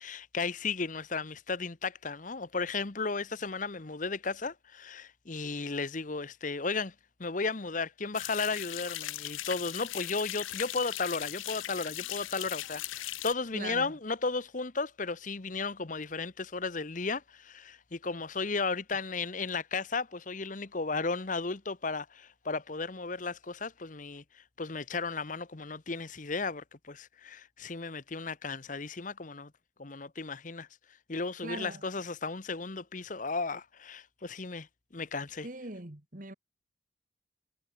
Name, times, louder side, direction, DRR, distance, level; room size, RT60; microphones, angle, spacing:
voice 1, 0.0-6.9 7.2-29.5 29.8-30.7 31.1-34.7 34.9-35.5, left 4 dB, 40° left, 0.9 m, -35 dB
sound 1, 8.1-13.3, left 15 dB, 80° left, 0.5 m, -39 dB
voice 2, 13.5-13.9 31.4-31.8 35.4-36.3, right 2 dB, 40° right, 2.0 m, -41 dB
head